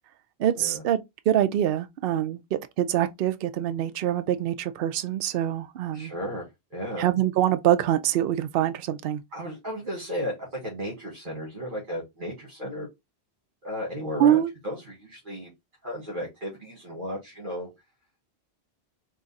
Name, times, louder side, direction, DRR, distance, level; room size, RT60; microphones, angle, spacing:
voice 1, 0.4-1.0 1.3-2.4 2.8-6.1 7.0-9.2 14.2-14.5, right 11 dB, 65° right, 0.7 m, -24 dB
voice 2, 5.9-7.1 9.3-12.9 13.6-15.5 15.8-17.7, equal, 50° right, 1.8 m, -34 dB
3.6 x 3.1 x 4.0 m
omnidirectional pair, 1.1 m